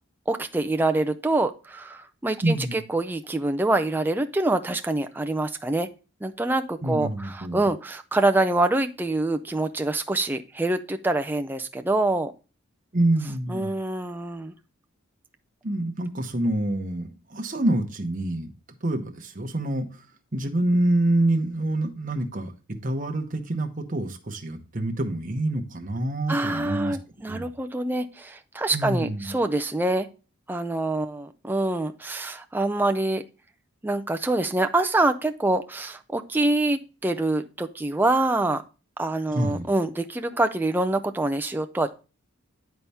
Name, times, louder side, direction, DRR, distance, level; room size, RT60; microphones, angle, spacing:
voice 1, 0.3-5.9 6.2-12.3 13.5-14.5 26.3-30.1 30.5-33.2 33.8-38.6 39.0-41.9, right 2 dB, 10° right, 0.3 m, -25 dB
voice 2, 2.4-2.8 6.8-7.7 12.9-13.7 15.6-18.5 18.8-19.9 20.3-22.5 22.8-27.0 27.3-27.5 28.7-29.4 39.3-39.7, right 1 dB, 35° right, 0.9 m, -26 dB
10.5 x 4.2 x 3.4 m
head